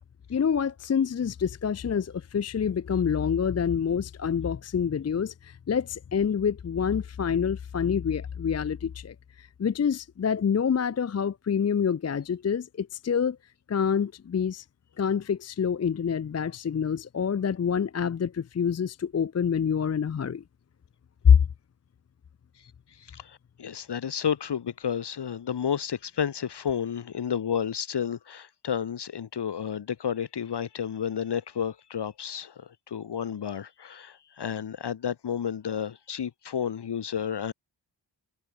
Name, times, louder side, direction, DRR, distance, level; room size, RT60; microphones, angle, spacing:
voice 1, 0.3-13.4 13.7-14.6 15.0-20.4 21.2-21.4, left 7 dB, 35° left, 0.5 m, -26 dB
voice 2, 23.0-37.5, left 8 dB, 60° left, 1.5 m, -31 dB
wide cardioid pair, 160°, 46 cm